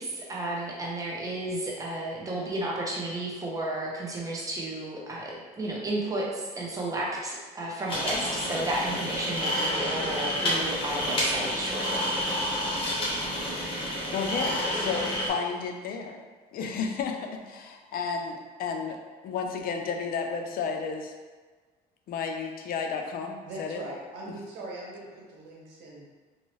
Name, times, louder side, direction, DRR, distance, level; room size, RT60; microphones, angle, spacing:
voice 1, 0.0-12.1, right 1 dB, 20° right, -3 dB, 0.7 m, -32 dB
sound 1, 7.9-15.3, equal, 30° left, 1.1 m, -29 dB
voice 2, 14.1-16.2 16.5-19.0 19.2-21.1 22.1-23.8, left 5 dB, 60° left, 4 dB, 0.4 m, -32 dB
voice 3, 23.4-26.1, right 2 dB, 85° right, -3 dB, 0.9 m, -41 dB
3.0 x 2.6 x 3.0 m, 1.4 s
cardioid pair, 110°, 17 cm